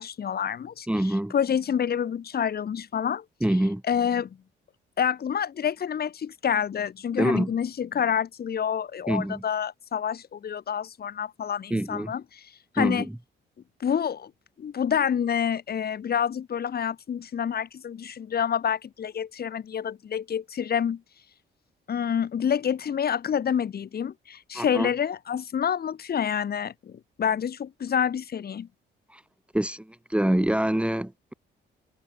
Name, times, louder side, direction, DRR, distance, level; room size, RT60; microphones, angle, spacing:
voice 1, 0.0-3.2 3.9-4.4 5.0-13.1 13.8-14.3 14.6-21.0 21.9-28.7, left 8 dB, 50° left, 2.7 m, -28 dB
voice 2, 0.9-1.3 3.4-3.8 7.2-7.5 9.1-9.4 11.7-12.1 12.8-13.1 24.5-24.9 29.1-29.2 29.5-31.3, right 1 dB, 5° right, 2.5 m, -25 dB
cardioid pair, 90°, 20 cm